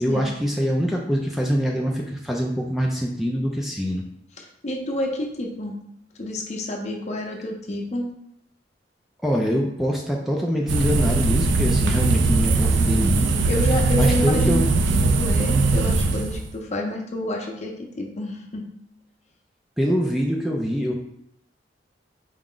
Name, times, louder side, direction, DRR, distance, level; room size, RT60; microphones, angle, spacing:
voice 1, 0.0-4.1 9.2-13.4 13.9-14.7 19.8-20.9, equal, ahead, -1 dB, 0.3 m, -24 dB
voice 2, 4.4-5.7 6.2-8.1 13.5-18.7, left 1 dB, 40° left, 1 dB, 0.6 m, -29 dB
sound 1, 10.7-16.5, right 3 dB, 75° right, 0.4 m, -20 dB
4.6 x 2.1 x 3.7 m, 0.75 s
head